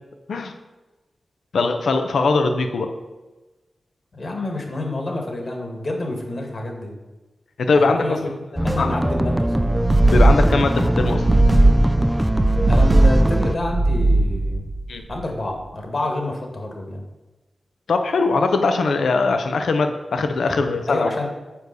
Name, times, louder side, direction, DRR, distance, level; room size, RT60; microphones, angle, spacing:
voice 1, 1.5-2.9 7.6-8.1 8.8-8.9 10.1-11.2 14.9-15.0 17.9-21.1, left 3 dB, 85° left, 6 dB, 0.7 m, -20 dB
voice 2, 4.1-7.0 7.7-9.8 12.7-14.6 15.1-17.0 20.4-20.6 20.9-21.3, left 2 dB, 60° left, 2 dB, 1.9 m, -28 dB
sound 1, 8.6-13.5, right 1 dB, 10° right, 0.3 m, -22 dB
sound 2, 9.2-15.2, right 2 dB, 65° right, 1.3 m, -18 dB
7.0 x 4.8 x 6.7 m, 1.1 s
cardioid pair, 45°, 0 cm